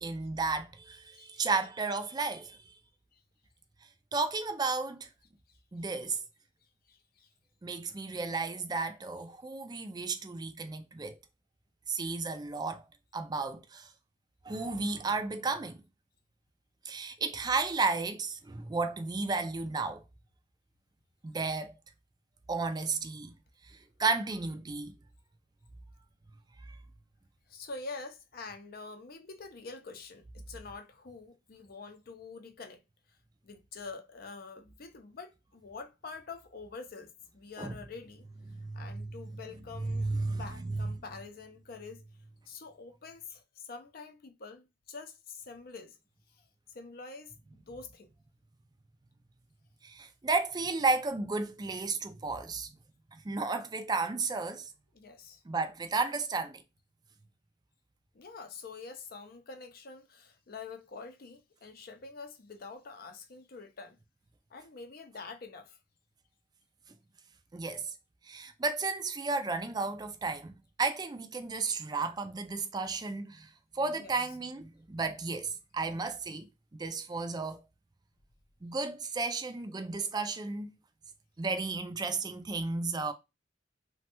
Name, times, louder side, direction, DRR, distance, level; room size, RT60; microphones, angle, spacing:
voice 1, 0.0-2.7 4.1-5.1 5.7-6.2 7.6-11.2 11.9-12.9 13.1-13.9 14.4-15.8 16.9-20.0 21.2-21.8 22.5-23.3 24.0-24.9 26.7-26.8 37.6-37.8 38.5-39.1 39.8-40.9 49.8-52.7 53.1-54.7 55.5-56.6 67.5-67.9 68.3-76.5 76.7-77.6 78.6-80.7 81.4-83.1, right 3 dB, 20° right, 0.4 m, -33 dB
voice 2, 1.1-1.7 3.1-3.2 5.5-5.6 6.9-7.3 27.5-32.8 33.4-38.2 38.7-42.0 42.5-46.0 46.3-46.4 46.7-47.3 47.7-48.1 54.9-55.4 58.1-64.0 64.5-65.8 73.9-74.3, left 4 dB, 50° left, 0.5 m, -46 dB
3.1 x 2.2 x 2.9 m
head